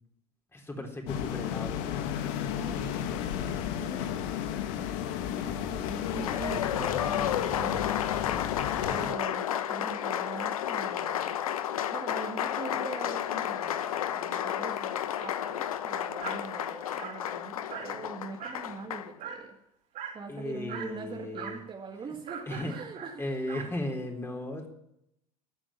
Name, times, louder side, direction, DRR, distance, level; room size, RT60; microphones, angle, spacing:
voice 1, 0.5-2.1 6.5-6.7 20.3-21.6 22.1-22.2 22.5-22.8 23.2-24.7, left 1 dB, 15° left, 3 dB, 3.7 m, -36 dB
sound 1, 1.1-9.1, left 9 dB, 60° left, 1.5 m, -33 dB
voice 2, 2.6-4.2 5.3-8.2 8.9-11.3 11.9-19.6 20.1-23.1, right 5 dB, 25° right, 3 dB, 1.9 m, -43 dB
Applause, 5.9-19.1, left 10 dB, 75° left, 0.9 m, -32 dB
Dog, 16.2-16.4 17.0-17.2 17.7-18.0 18.4-18.7 19.2-19.5 20.0-20.2 20.7-21.0 21.3-21.6 22.3-23.8, right 7 dB, 45° right, 4.2 m, -41 dB
15.0 x 9.0 x 7.2 m, 0.76 s
hypercardioid pair, 80°, 18 cm